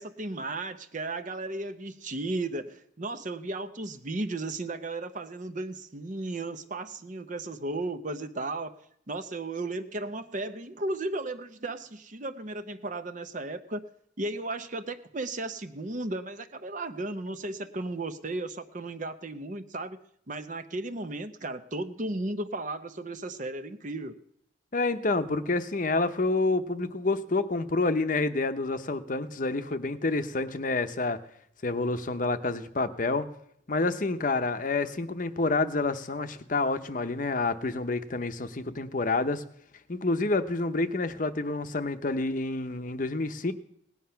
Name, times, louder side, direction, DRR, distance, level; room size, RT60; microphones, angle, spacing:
voice 1, 0.0-8.8 9.1-13.8 14.2-20.0 20.3-24.2, right 2 dB, 40° right, 10 dB, 0.8 m, -35 dB
voice 2, 24.7-31.2 31.6-33.3 33.7-39.4 39.9-43.5, left 3 dB, 45° left, 10 dB, 0.8 m, -28 dB
18.0 x 9.6 x 5.7 m, 0.70 s
head